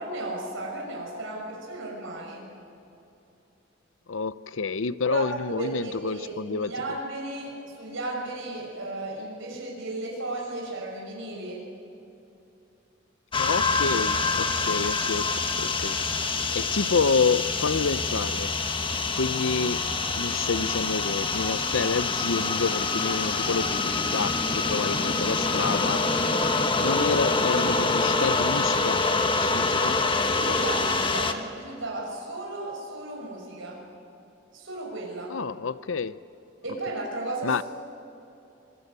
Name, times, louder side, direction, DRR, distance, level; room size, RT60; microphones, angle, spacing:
voice 1, 0.0-2.5 5.1-11.6 26.6-27.0 30.2-33.8 34.5-35.3 36.6-37.6, right 2 dB, 80° right, 6.2 m, -34 dB
voice 2, 4.1-7.0 13.4-16.0 16.5-18.5 19.1-19.8 20.1-26.1 26.8-29.1 29.3-30.0 35.3-36.2 37.4-37.6, left 4 dB, 75° left, 0.7 m, -28 dB
sound 1, 13.3-31.3, left 3 dB, 25° left, 1.3 m, -26 dB
25.5 x 23.5 x 9.6 m
head